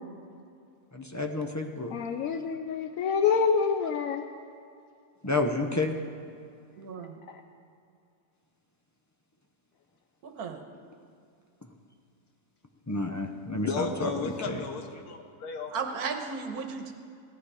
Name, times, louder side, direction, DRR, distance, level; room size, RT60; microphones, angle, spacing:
voice 1, 0.9-1.9 5.2-5.9 12.9-14.6, left 2 dB, 25° left, 3 dB, 0.4 m, -30 dB
voice 2, 1.9-4.2, left 6 dB, 70° left, 6 dB, 1.0 m, -26 dB
voice 3, 6.8-7.2 10.2-10.6 15.7-16.9, right 5 dB, 85° right, 6 dB, 1.5 m, -35 dB
voice 4, 13.7-15.7, left 5 dB, 90° left, 5 dB, 1.6 m, -34 dB
16.0 x 11.5 x 4.9 m, 2.4 s
omnidirectional pair, 1.6 m